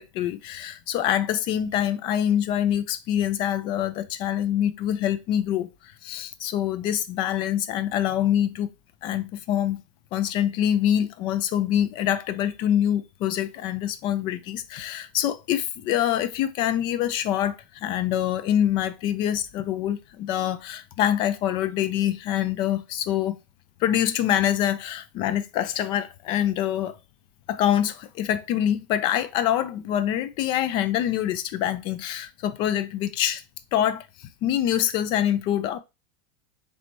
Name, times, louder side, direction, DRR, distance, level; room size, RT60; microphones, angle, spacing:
voice 1, 0.0-8.7 9.0-9.8 10.1-23.4 23.8-27.0 27.5-33.4 33.7-35.8, left 11 dB, 45° left, 0.4 m, -25 dB
3.9 x 3.3 x 3.0 m
supercardioid pair, 145°, 11 cm